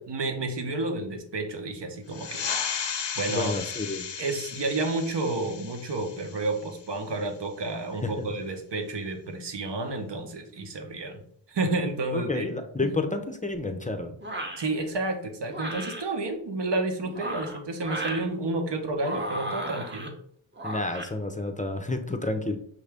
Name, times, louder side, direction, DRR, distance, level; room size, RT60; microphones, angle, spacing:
voice 1, 0.0-2.4 3.2-3.5 4.2-11.2 11.5-12.5 12.8-12.9 14.6-20.1, right 2 dB, 55° right, 4 dB, 1.0 m, -30 dB
sound 1, 2.1-7.2, left 7 dB, 60° left, 0.6 m, -35 dB
voice 2, 3.3-4.1 8.0-8.1 12.1-14.2 20.6-22.6, left 2 dB, 15° left, 6 dB, 0.6 m, -30 dB
sound 2, 14.2-14.7 15.5-16.0 17.0-18.3 19.0-20.1 20.6-21.1, right 1 dB, 20° right, 0.9 m, -34 dB
5.9 x 2.6 x 3.4 m, 0.65 s
wide cardioid pair, 65°, 49 cm